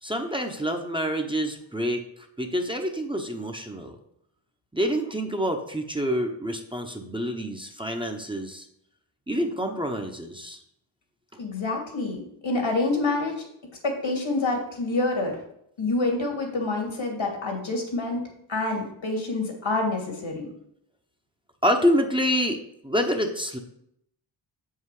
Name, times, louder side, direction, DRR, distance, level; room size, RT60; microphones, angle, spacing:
voice 1, 0.0-2.0 2.4-4.0 4.7-8.7 9.3-10.6 21.6-23.6, equal, 10° right, 2 dB, 1.0 m, -27 dB
voice 2, 11.4-13.4 13.8-15.3 15.8-18.2 18.5-20.5, left 2 dB, 75° left, 1 dB, 2.6 m, -27 dB
7.2 x 5.7 x 4.9 m, 0.73 s
cardioid pair, 65°, 47 cm